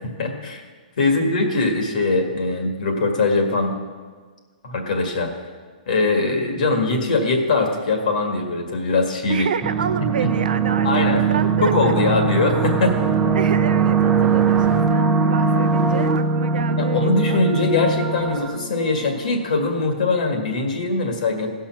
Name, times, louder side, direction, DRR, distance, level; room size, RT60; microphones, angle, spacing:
voice 1, 0.2-0.6 1.0-3.8 4.6-5.3 5.9-9.5 10.2-10.3 10.8-11.2 11.6-13.3 16.8-21.5, left 3 dB, 60° left, 3 dB, 2.0 m, -21 dB
voice 2, 9.3-12.4 13.3-17.4, right 7 dB, 70° right, 12 dB, 0.5 m, -29 dB
sound 1, 9.6-19.4, right 5 dB, 10° right, 0.5 m, -21 dB
15.5 x 5.7 x 6.0 m, 1.5 s
hypercardioid pair, 160°, 5 cm